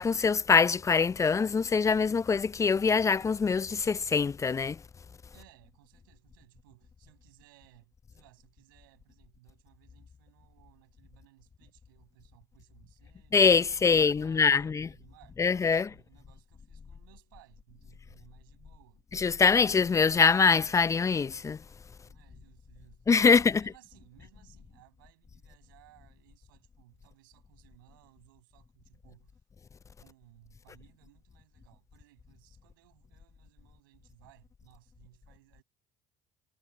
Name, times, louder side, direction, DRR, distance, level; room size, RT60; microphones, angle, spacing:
voice 1, 0.0-4.8 13.3-14.9 15.4-15.9 19.1-21.6 23.1-23.5, left 5 dB, 30° left, 0.5 m, -24 dB
voice 2, 5.3-13.4 13.7-15.4 15.7-19.1 22.0-23.1 23.5-29.4 30.0-35.6, right 19 dB, 90° right, 6.4 m, -61 dB
hypercardioid pair, 65°, 11 cm